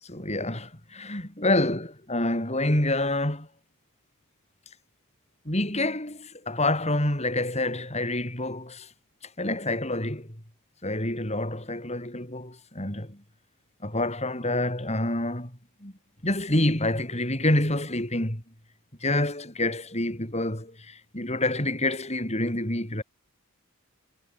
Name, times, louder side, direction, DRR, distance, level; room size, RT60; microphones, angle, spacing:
voice 1, 0.0-3.5 5.5-8.9 9.4-10.3 10.8-13.2 13.8-15.9 16.2-18.4 19.0-23.0, left 1 dB, 30° left, 7.2 m, -27 dB
head